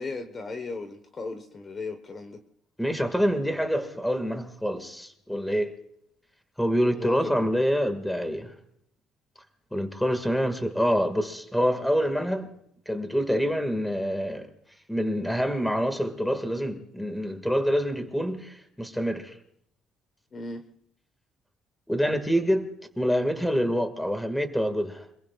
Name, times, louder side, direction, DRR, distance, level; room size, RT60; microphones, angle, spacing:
voice 1, 0.0-2.4 6.9-7.5 20.3-20.6, left 3 dB, 25° left, 1.2 m, -36 dB
voice 2, 2.8-5.8 6.6-8.5 9.7-12.5 12.9-14.5 14.9-19.3 21.9-22.7 23.0-25.0, equal, 5° left, 1.9 m, -26 dB
26.5 x 22.0 x 2.4 m
cardioid pair, 150°, 0 cm